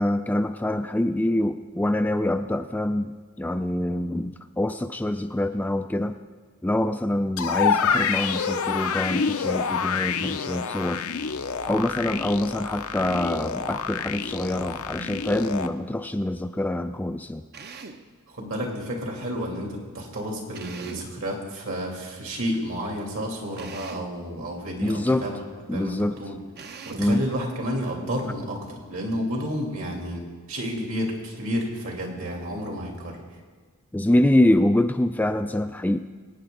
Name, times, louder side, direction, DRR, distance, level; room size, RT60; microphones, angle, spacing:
voice 1, 0.0-6.2 6.6-11.1 11.7-17.4 24.8-25.3 25.7-26.2 27.0-27.2 33.9-36.0, left 1 dB, 10° left, 8 dB, 0.3 m, -25 dB
sound 1, 7.4-15.7, left 6 dB, 75° left, 0.7 m, -27 dB
Drill, 17.5-18.1 20.5-21.2 23.6-24.2 26.6-27.2, right 4 dB, 50° right, 0.8 m, -41 dB
voice 2, 18.3-25.4 25.7-26.4 26.9-30.2 30.5-33.2, equal, 65° right, 0 dB, 3.0 m, -31 dB
23.0 x 9.4 x 3.9 m, 1.5 s
head